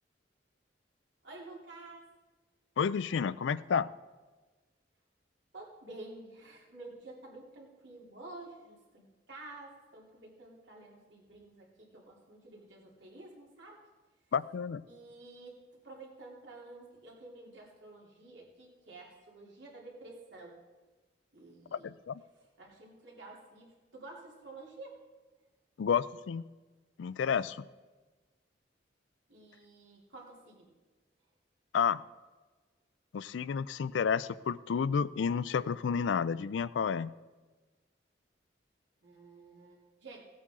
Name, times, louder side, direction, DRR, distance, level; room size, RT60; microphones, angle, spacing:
voice 1, 1.2-2.1 5.5-13.8 14.9-15.6 15.8-20.6 21.3-21.9 22.4-25.0 29.3-30.7 39.0-40.2, right 2 dB, 85° right, -2 dB, 2.9 m, -50 dB
voice 2, 2.8-3.9 14.3-14.8 21.7-22.2 25.8-26.5 27.0-27.6 31.7-32.0 33.1-37.1, left 6 dB, 85° left, 17 dB, 0.4 m, -31 dB
17.0 x 8.5 x 3.7 m, 1.3 s
head